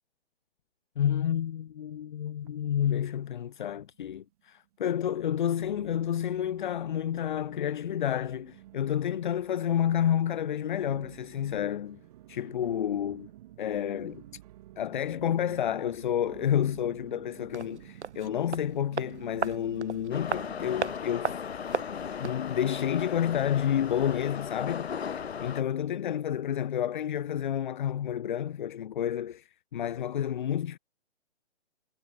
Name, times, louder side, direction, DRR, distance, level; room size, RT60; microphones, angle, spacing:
voice 1, 1.0-12.0 12.3-13.3 13.6-14.2 14.8-21.3 22.2-24.9 25.4-30.8, left 10 dB, 45° left, 0.4 m, -30 dB
sound 1, 2.4-3.3 3.6-4.2 4.7-4.8 5.6-20.7, right 14 dB, 35° right, 1.8 m, -51 dB
sound 2, 17.5-22.5 22.7-22.8, right 6 dB, 85° right, 1.2 m, -36 dB
Subway metro underground, 20.1-25.6, left 7 dB, 65° left, 1.8 m, -36 dB
hypercardioid pair, 145°, 33 cm